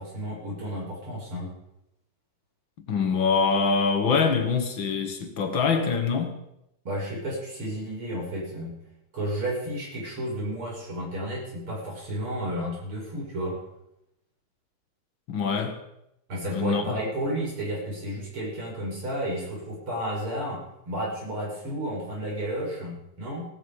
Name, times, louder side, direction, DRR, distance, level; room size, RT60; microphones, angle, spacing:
voice 1, 0.0-1.5 6.8-8.7 9.1-13.6 16.3-20.6 20.9-23.5, right 1 dB, 80° right, 6.5 m, -32 dB
voice 2, 2.9-6.4 15.3-15.8 16.5-16.8, left 5 dB, 65° left, 2.5 m, -24 dB
17.0 x 13.5 x 5.0 m
omnidirectional pair, 2.3 m